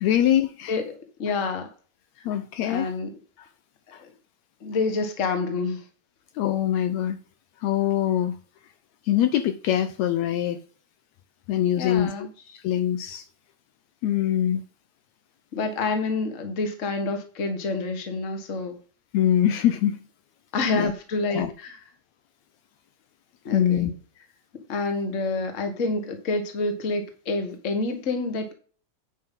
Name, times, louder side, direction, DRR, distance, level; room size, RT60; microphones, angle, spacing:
voice 1, 0.0-0.7 2.3-2.9 3.4-3.5 3.9-4.0 6.4-7.2 7.6-8.4 9.1-10.6 11.5-13.3 14.0-14.6 19.1-20.0 20.8-20.9 21.3-21.5 23.5-23.9, left 11 dB, 75° left, 1.8 m, -23 dB
voice 2, 1.2-1.7 2.6-3.1 4.0-4.1 4.6-5.8 11.8-12.3 15.5-18.8 20.5-21.8 23.4-23.9 24.7-28.5, left 3 dB, 35° left, 1.4 m, -28 dB
9.9 x 5.4 x 5.4 m
omnidirectional pair, 3.4 m